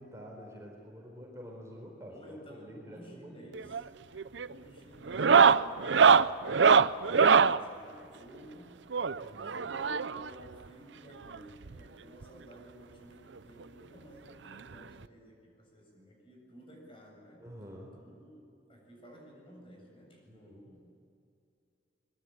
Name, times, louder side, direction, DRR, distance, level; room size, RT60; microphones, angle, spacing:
voice 1, 0.0-3.5 9.1-9.7 17.4-18.0 20.3-20.8, equal, 15° right, -1 dB, 4.5 m, -48 dB
voice 2, 2.1-3.8 4.3-8.8 9.4-17.4 18.0-20.8, equal, 30° left, 0 dB, 7.8 m, -54 dB
sound 1, 3.5-3.9 4.2-4.5 5.1-7.6 8.9-10.3 11.3-11.4 11.6-11.8 12.2-12.3 13.6-13.7 15.0-15.1, right 6 dB, 75° right, 0.6 m, -23 dB
24.5 x 22.5 x 9.1 m, 2.6 s
head